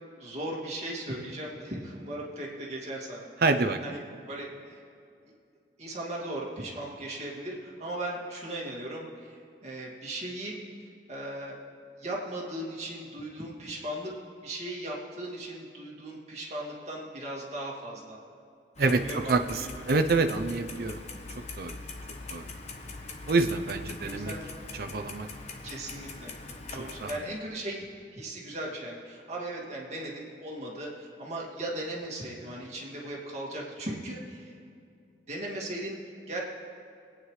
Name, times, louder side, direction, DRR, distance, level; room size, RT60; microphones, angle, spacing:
voice 1, 0.2-3.3 3.8-4.0 4.3-4.8 5.8-10.6 11.1-11.6 12.0-14.1 14.4-18.2 18.9-20.0 24.0-24.4 25.6-26.3 26.7-34.5 35.3-36.0 36.3-36.4, right 1 dB, 40° right, -4 dB, 2.2 m, -37 dB
voice 2, 3.4-4.0 18.8-19.6 19.9-21.0 21.6-21.8 22.3-22.5 23.3-24.3 24.8-25.3 27.0-27.2, right 3 dB, 55° right, 7 dB, 0.6 m, -27 dB
Clock, 18.8-27.1, left 3 dB, 40° left, 1.0 m, -42 dB
22.5 x 9.1 x 3.2 m, 2.4 s
head